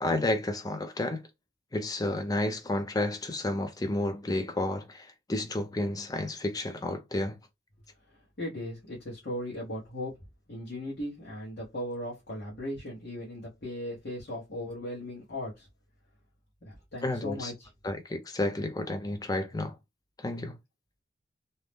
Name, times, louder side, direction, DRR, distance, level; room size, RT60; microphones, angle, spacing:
voice 1, 0.0-1.2 1.7-7.4 17.0-17.5 17.8-19.8 20.2-20.6, left 1 dB, 20° left, 0.5 m, -31 dB
voice 2, 8.1-10.2 10.5-15.7 16.6-17.7, left 1 dB, 60° left, 1.0 m, -38 dB
2.7 x 2.1 x 3.3 m
head